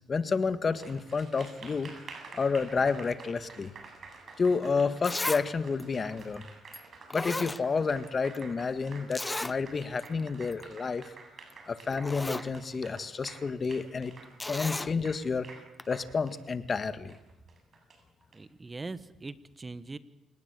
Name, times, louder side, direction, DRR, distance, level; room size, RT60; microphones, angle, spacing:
voice 1, 0.1-1.9 2.3-3.7 4.4-6.4 7.1-11.0 11.7-14.1 14.5-15.5 15.9-17.2, left 4 dB, 40° left, 12 dB, 1.7 m, -30 dB
Applause, 0.6-18.4, right 4 dB, 50° right, 7.7 m, -50 dB
Zipper (clothing), 4.5-4.6 5.0-5.5 5.8-5.9 6.7-6.8 7.1-8.1 8.3-8.4 9.1-9.6 10.0-10.1 10.4-10.6 11.5-11.6 11.9-12.5 14.4-14.9 15.8-15.9, left 2 dB, 15° left, 0.8 m, -34 dB
voice 2, 18.3-20.0, right 3 dB, 25° right, 14 dB, 1.3 m, -41 dB
28.5 x 19.0 x 8.3 m, 0.90 s
cardioid pair, 90°, 0 cm